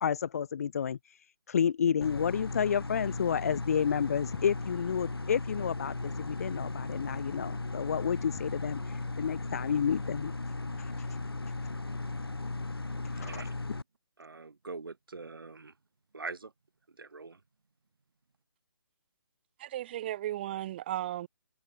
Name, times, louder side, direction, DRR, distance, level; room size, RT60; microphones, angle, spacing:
voice 1, 0.0-10.3 10.8-11.1 13.0-13.3, left 7 dB, 40° left, 0.8 m, -31 dB
sound 1, 2.0-13.8, left 3 dB, 75° left, 1.5 m, -37 dB
voice 2, 13.2-13.5 14.2-15.7 16.1-16.5 16.9-17.4, right 4 dB, 65° right, 2.5 m, -43 dB
voice 3, 19.6-21.3, right 13 dB, 25° right, 1.1 m, -35 dB
figure-of-eight pair, 145°, 13 cm